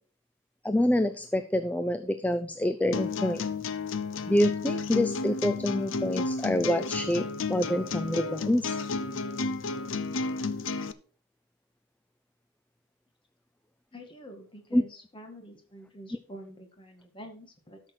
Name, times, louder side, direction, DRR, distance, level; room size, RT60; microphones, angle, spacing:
voice 1, 0.6-3.4 4.3-8.8 14.7-14.8, left 1 dB, 10° left, 9 dB, 0.4 m, -27 dB
sound 1, 2.9-10.9, left 4 dB, 75° left, 0.7 m, -32 dB
voice 2, 13.9-17.8, equal, 25° left, 3 dB, 2.0 m, -47 dB
13.0 x 6.2 x 4.5 m, 0.40 s
head